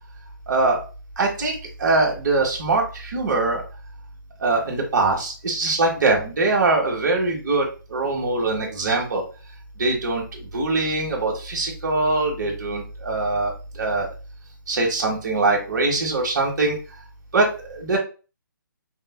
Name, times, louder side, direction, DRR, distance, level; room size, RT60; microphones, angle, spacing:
voice 1, 0.5-0.8 1.2-1.5 1.8-3.6 4.4-9.2 9.8-13.5 13.8-14.1 14.7-16.8 17.3-18.0, right 3 dB, 55° right, -1 dB, 1.2 m, -22 dB
5.1 x 2.2 x 2.2 m, 0.33 s
hypercardioid pair, 160°, 11 cm